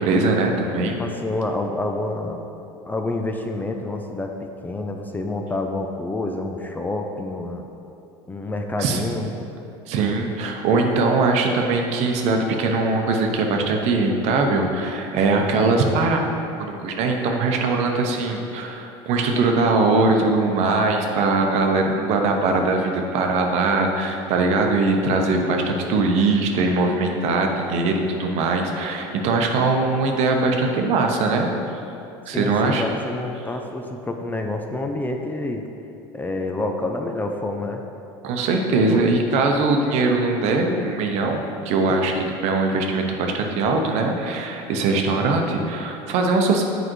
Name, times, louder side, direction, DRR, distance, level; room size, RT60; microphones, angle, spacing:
voice 1, 0.0-1.0 8.8-9.1 9.9-16.2 16.6-31.5 32.3-32.8 38.2-42.1 42.4-46.6, right 3 dB, 60° right, 2 dB, 0.8 m, -21 dB
voice 2, 0.9-2.4 2.8-7.7 8.3-9.5 32.3-35.6 36.1-37.8 38.9-39.0, left 2 dB, 15° left, 4 dB, 0.5 m, -28 dB
7.6 x 5.0 x 3.1 m, 2.8 s
hypercardioid pair, 90°, 13 cm